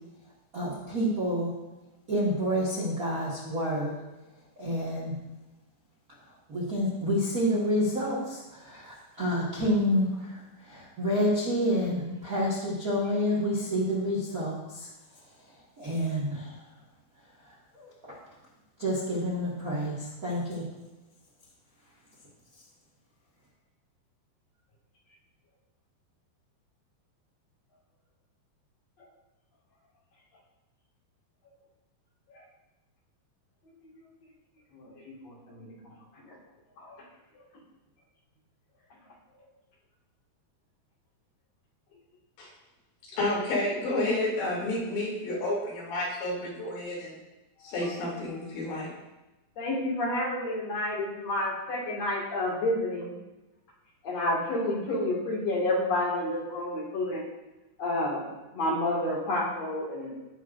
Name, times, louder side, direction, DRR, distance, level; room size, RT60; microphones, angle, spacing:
voice 1, 0.5-1.5 2.1-3.9 4.6-5.1 6.5-14.9 15.8-16.6 17.7-18.2 18.8-20.6, equal, 85° right, -5 dB, 0.7 m, -29 dB
voice 2, 33.6-34.1 34.7-36.4 36.8-37.0 37.3-37.4 49.6-53.1 54.0-57.2 57.8-58.3 58.5-60.1, left 1 dB, 45° left, -3 dB, 2.6 m, -30 dB
voice 3, 43.2-47.2 47.6-48.9, left 2 dB, 80° left, -6 dB, 5.3 m, -30 dB
17.0 x 6.1 x 2.6 m, 1.1 s
omnidirectional pair, 5.0 m